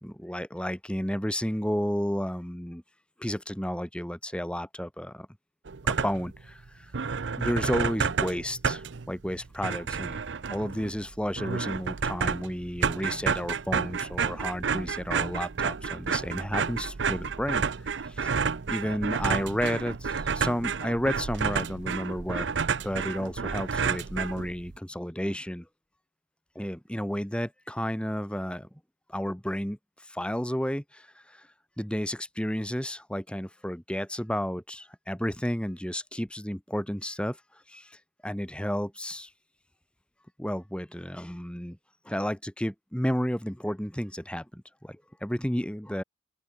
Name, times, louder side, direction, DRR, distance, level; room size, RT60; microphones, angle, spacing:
voice 1, 0.0-2.8 3.2-5.3 5.9-6.9 7.4-10.2 10.5-18.4 18.7-22.5 22.8-25.7 26.6-28.7 29.1-31.5 31.8-37.4 37.7-39.3 40.4-41.8 42.0-46.0, equal, 5° left, 2.3 m, -32 dB
sound 1, 5.7-6.4 6.7-6.8 6.9-24.8, right 5 dB, 65° right, 0.7 m, -30 dB
open air
head